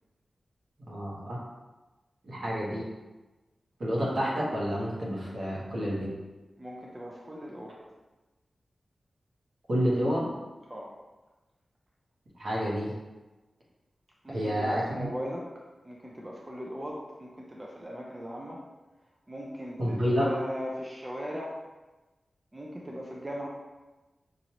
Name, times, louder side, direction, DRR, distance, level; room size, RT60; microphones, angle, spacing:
voice 1, 0.9-1.4 2.2-2.9 3.8-6.1 9.7-10.3 12.4-12.9 14.3-15.1 19.8-20.3, equal, 75° right, -6 dB, 1.3 m, -29 dB
voice 2, 6.6-7.8 10.7-10.9 14.2-15.5 15.8-18.6 19.3-21.7 22.5-23.5, equal, 25° right, -3 dB, 0.6 m, -39 dB
5.1 x 2.6 x 3.0 m, 1.1 s
cardioid pair, 60°, 0 cm